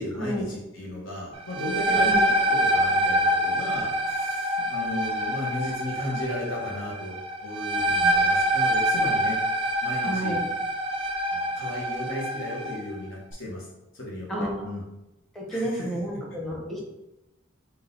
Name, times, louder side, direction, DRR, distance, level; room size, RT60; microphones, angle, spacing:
voice 1, 0.0-9.4 9.8-10.4 11.3-13.7 13.9-14.8 15.5-15.9, left 1 dB, 70° left, -4 dB, 1.4 m, -35 dB
sound 1, 1.3-12.8, right 1 dB, 25° right, 0.4 m, -25 dB
voice 2, 10.0-10.5 14.3-14.8 15.3-16.8, right 1 dB, ahead, -2 dB, 0.8 m, -31 dB
3.9 x 2.8 x 4.0 m, 0.96 s
head